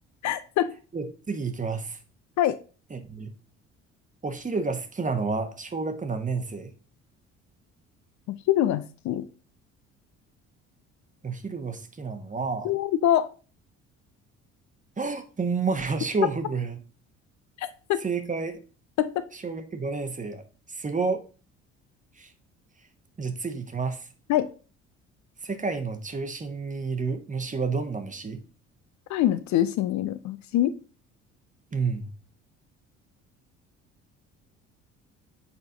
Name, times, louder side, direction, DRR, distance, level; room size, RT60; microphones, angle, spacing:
voice 1, 0.2-0.8 2.4-2.6 8.5-9.3 12.6-13.3 17.6-18.1 19.0-19.3 24.3-24.5 29.1-30.7, left 12 dB, 50° left, 13 dB, 0.5 m, -24 dB
voice 2, 0.9-2.0 2.9-3.3 4.2-6.7 11.2-12.7 15.0-16.8 18.0-18.6 19.4-20.4 20.7-21.2 22.2-22.3 23.2-24.1 25.4-28.4 31.7-32.1, right 4 dB, 20° right, 8 dB, 1.1 m, -30 dB
6.9 x 4.0 x 3.8 m, 0.36 s
hypercardioid pair, 55°, 37 cm